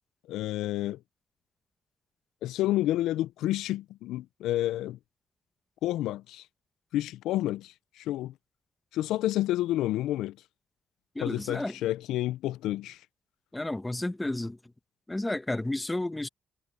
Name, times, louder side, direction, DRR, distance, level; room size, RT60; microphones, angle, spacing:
voice 1, 0.3-1.0 2.4-5.0 5.8-6.5 6.9-8.3 8.9-10.4 11.2-13.0, left 14 dB, 90° left, 0.3 m, -29 dB
voice 2, 11.1-11.7 13.5-14.6 15.1-16.3, left 1 dB, 10° left, 1.1 m, -31 dB
cardioid pair, 90°, 0 cm